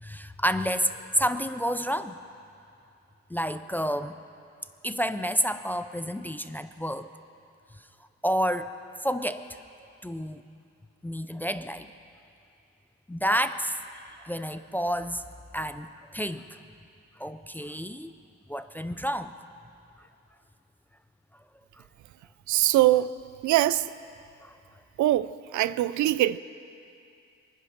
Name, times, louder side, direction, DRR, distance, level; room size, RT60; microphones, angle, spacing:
voice 1, 0.0-2.2 3.3-4.2 4.8-7.1 8.2-8.7 9.0-9.5 10.0-10.4 11.0-11.9 13.1-13.8 14.2-15.2 15.5-16.4 17.2-18.1 18.5-19.3 24.4-24.5, equal, 5° left, 0.3 m, -29 dB
voice 2, 22.5-23.1 23.4-23.9 25.0-26.4, right 14 dB, 85° right, 0.5 m, -23 dB
23.5 x 10.0 x 5.8 m
cardioid pair, 145°, 29 cm